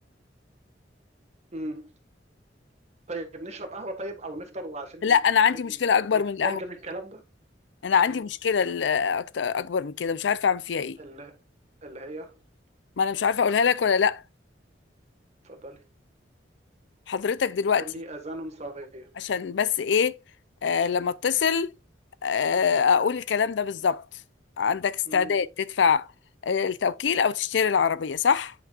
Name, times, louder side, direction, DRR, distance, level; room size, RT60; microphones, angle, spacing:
voice 1, 1.5-1.9 3.1-7.2 8.1-8.2 11.0-11.4 11.8-12.4 15.4-15.8 17.8-19.1 25.0-25.3, right 1 dB, 40° right, 1.6 m, -38 dB
voice 2, 5.0-6.6 7.8-11.0 13.0-14.2 17.1-17.8 19.2-20.1 20.6-21.7 22.2-24.0 24.6-26.1 26.4-28.5, left 6 dB, 85° left, 0.5 m, -24 dB
9.8 x 5.8 x 2.4 m
head